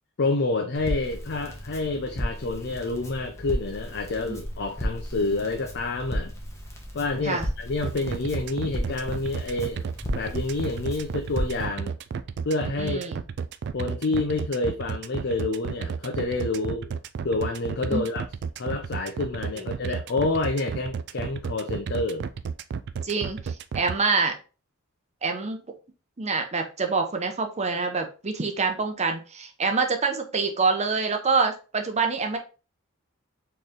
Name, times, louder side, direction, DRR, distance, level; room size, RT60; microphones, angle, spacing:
voice 1, 0.2-6.3 6.9-9.8 10.1-11.9 12.4-13.1 13.7-16.9 17.2-18.2 18.6-22.2, left 2 dB, 55° left, 3 dB, 0.6 m, -28 dB
Crackle, 0.7-11.6, equal, 15° left, 1.0 m, -35 dB
sound 1, 7.8-23.9, right 6 dB, 55° right, 0.3 m, -32 dB
voice 2, 12.8-13.2 17.9-18.1 19.5-19.6 23.0-24.3 25.2-25.6 26.2-32.4, right 4 dB, 30° right, 4 dB, 0.8 m, -26 dB
4.5 x 3.2 x 3.6 m, 0.34 s
head